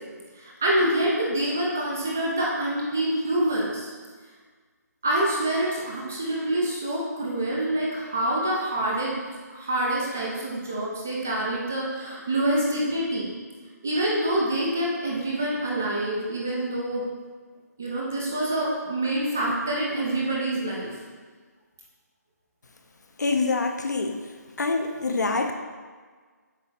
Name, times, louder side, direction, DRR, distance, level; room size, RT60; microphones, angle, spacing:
voice 1, 0.3-3.9 5.0-9.1 9.5-13.3 13.8-17.1 17.8-21.0, right 1 dB, 10° right, -4 dB, 0.3 m, -26 dB
voice 2, 23.2-24.3 24.6-25.5, left 3 dB, 75° left, 5 dB, 1.0 m, -25 dB
7.6 x 3.8 x 6.1 m, 1.5 s
hypercardioid pair, 180°, 9 cm